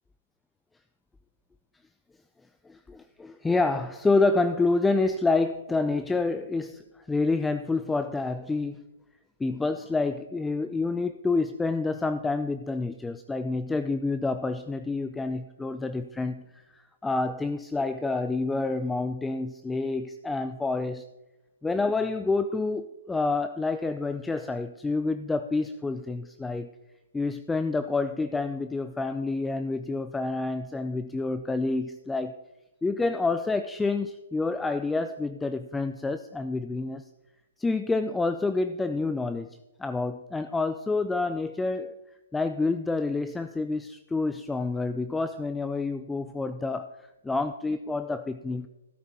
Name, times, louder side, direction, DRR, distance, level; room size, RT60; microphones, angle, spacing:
voice 1, 2.7-8.8 9.4-21.1 21.6-26.7 27.1-32.4 32.8-37.0 37.6-42.0 42.3-46.9 47.2-48.7, left 3 dB, 5° left, 11 dB, 0.3 m, -28 dB
12.5 x 10.5 x 4.2 m, 1.0 s
hypercardioid pair, 155°, 0 cm